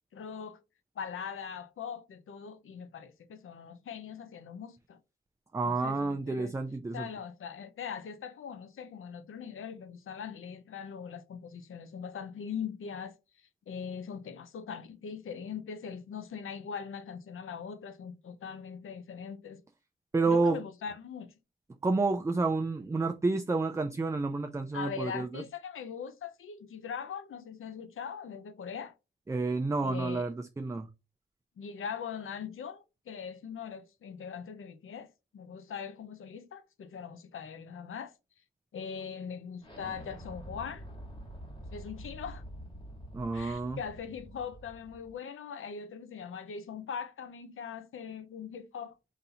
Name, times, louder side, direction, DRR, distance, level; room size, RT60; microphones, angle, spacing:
voice 1, 0.1-0.6 1.0-5.0 5.6-6.5 6.9-19.6 20.3-21.3 24.7-28.9 29.8-30.3 31.6-38.1 38.7-40.8 41.7-42.4 43.3-49.0, left 7 dB, 80° left, 0.7 m, -41 dB
voice 2, 5.5-7.1 20.1-20.6 21.8-25.4 29.3-30.9 43.1-43.8, right 3 dB, 15° right, 0.4 m, -29 dB
Explosion, 39.6-45.1, equal, 20° left, 1.6 m, -46 dB
4.0 x 2.8 x 4.0 m
wide cardioid pair, 100°, 21 cm